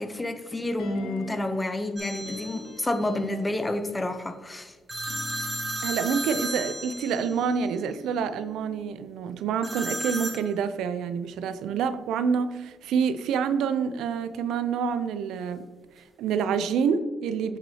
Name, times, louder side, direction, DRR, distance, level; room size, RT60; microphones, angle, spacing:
voice 1, 0.0-4.8, left 1 dB, 15° left, 9 dB, 0.6 m, -29 dB
sound 1, 0.8-1.6 2.2-3.9 4.9-9.1 9.4-9.5, left 4 dB, 80° left, 0.8 m, -43 dB
sound 2, 2.0-2.7 4.9-7.5 9.6-10.4, right 1 dB, 15° right, 1.4 m, -33 dB
voice 2, 5.8-15.7 16.0-17.6, right 6 dB, 85° right, 12 dB, 0.4 m, -27 dB
8.4 x 5.9 x 2.8 m, 1.4 s
cardioid pair, 90°, 0 cm